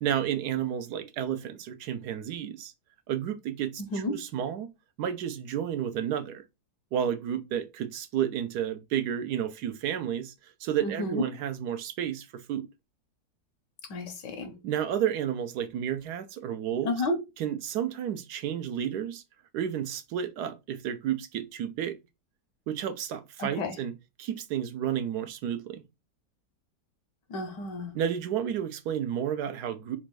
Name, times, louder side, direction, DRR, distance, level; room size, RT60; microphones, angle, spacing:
voice 1, 0.0-2.7 3.1-4.7 5.0-6.4 6.9-12.7 14.6-16.9 17.4-19.2 19.5-22.0 22.7-23.9 24.2-25.8 27.9-30.0, right 9 dB, 70° right, 1.1 m, -31 dB
voice 2, 3.8-4.1 10.8-11.2 13.9-14.5 16.8-17.1 23.4-23.8 27.3-27.9, left 2 dB, 85° left, 1.6 m, -31 dB
4.2 x 2.5 x 4.6 m
omnidirectional pair, 1.9 m